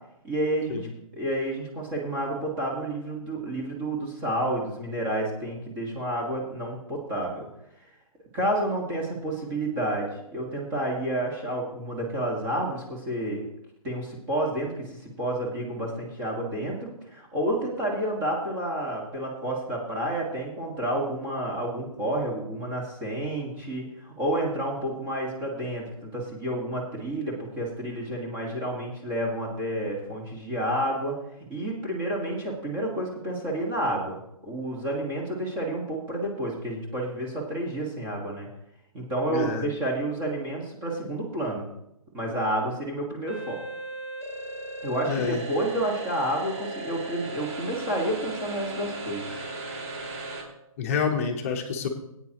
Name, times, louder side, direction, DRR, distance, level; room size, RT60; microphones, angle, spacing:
voice 1, 0.2-0.8 1.2-7.5 8.3-13.5 13.8-14.7 15.0-31.1 31.5-38.5 38.9-41.7 42.1-43.6 44.8-49.3, right 1 dB, 20° right, -3 dB, 1.7 m, -30 dB
voice 2, 39.3-39.7 45.1-45.4 50.8-51.9, left 6 dB, 25° left, 2 dB, 1.0 m, -28 dB
sound 1, 43.3-50.4, right 2 dB, 50° right, 3.5 m, -36 dB
18.5 x 9.0 x 3.0 m, 0.80 s
hypercardioid pair, 165°, 18 cm